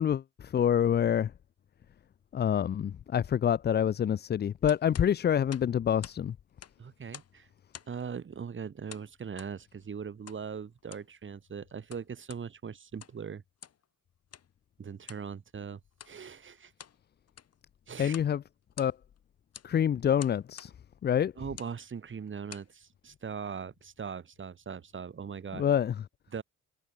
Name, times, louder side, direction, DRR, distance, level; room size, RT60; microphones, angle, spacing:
voice 1, 0.0-1.3 2.3-6.4 18.0-18.4 18.8-18.9 19.6-20.7 21.0-21.3 25.5-26.0, left 9 dB, 35° left, 0.5 m, -27 dB
sound 1, 4.7-6.2 6.5-7.4 7.7-8.1 8.9-9.5 10.3-10.4 10.8-11.1 11.7-12.4 12.9-13.2 13.6-13.8 14.3-14.5 15.0-15.3 15.9-16.2 16.6-17.0 17.3-17.6 18.1-18.3 18.6-19.2 19.5-19.7 20.2-20.7 21.4-21.8 22.3-22.7, left 8 dB, 55° left, 4.3 m, -49 dB
voice 2, 6.8-7.5 7.9-13.4 14.8-15.8 16.1-16.7 17.9-18.1 21.4-25.6 26.3-26.4, right 6 dB, 40° right, 2.8 m, -40 dB
cardioid pair, 90°, 30 cm